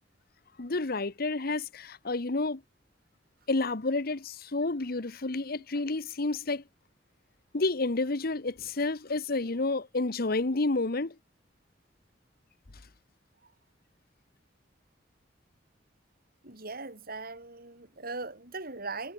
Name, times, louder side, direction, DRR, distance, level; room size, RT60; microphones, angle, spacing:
voice 1, 0.6-2.6 3.5-6.6 7.5-11.1, left 3 dB, 55° left, 1.1 m, -30 dB
voice 2, 16.4-19.1, right 3 dB, 55° right, 6.4 m, -39 dB
head